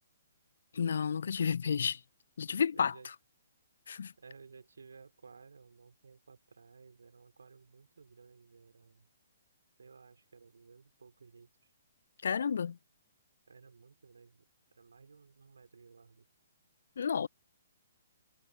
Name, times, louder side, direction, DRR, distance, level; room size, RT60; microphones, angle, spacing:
voice 1, 0.7-2.0 2.4-2.9 3.9-4.1 12.2-12.8 17.0-17.3, left 6 dB, 60° left, 0.6 m, -31 dB
voice 2, 2.7-3.1 4.2-9.1 9.8-11.7 13.5-14.4 14.7-16.3, right 5 dB, 65° right, 5.0 m, -56 dB
figure-of-eight pair, 125°, 0 cm